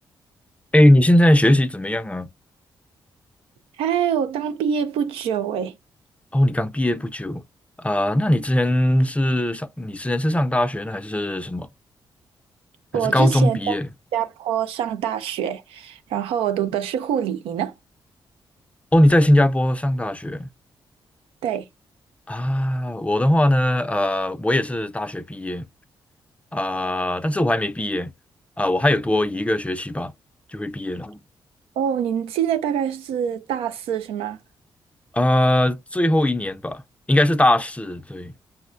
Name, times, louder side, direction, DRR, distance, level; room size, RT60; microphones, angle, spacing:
voice 1, 0.7-2.3 6.3-7.4 7.8-11.7 13.0-13.9 18.9-20.5 22.3-25.6 26.5-28.1 28.6-30.1 30.5-31.2 35.1-36.8 37.1-38.3, left 1 dB, 15° left, 0.4 m, -20 dB
voice 2, 3.8-5.7 12.9-13.8 14.1-17.7 21.4-21.7 31.8-34.4, right 9 dB, 90° right, 0.4 m, -25 dB
5.5 x 2.1 x 2.3 m
supercardioid pair, 55°, 9 cm